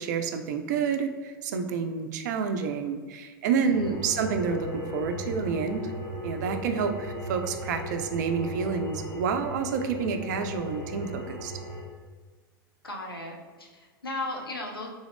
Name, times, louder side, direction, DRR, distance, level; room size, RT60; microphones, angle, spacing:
voice 1, 0.0-5.9 6.2-11.5, right 6 dB, 50° right, 7 dB, 0.4 m, -29 dB
voice 2, 3.6-4.0 12.8-14.9, left 2 dB, 80° left, 0 dB, 0.6 m, -36 dB
sound 1, 3.7-11.8, equal, 35° left, 1.2 m, -36 dB
3.8 x 2.4 x 3.4 m, 1.4 s
figure-of-eight pair, 90°, 12 cm